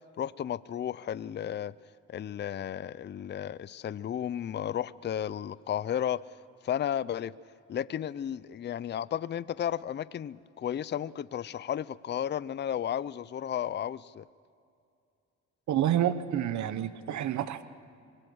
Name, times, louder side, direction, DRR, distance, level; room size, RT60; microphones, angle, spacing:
voice 1, 0.2-1.7 2.1-6.2 6.6-7.4 7.7-14.2, left 10 dB, 35° left, 18 dB, 0.5 m, -33 dB
voice 2, 15.7-17.6, right 11 dB, 70° right, 13 dB, 1.1 m, -28 dB
24.5 x 20.5 x 6.3 m, 2.5 s
cardioid pair, 90°, 30 cm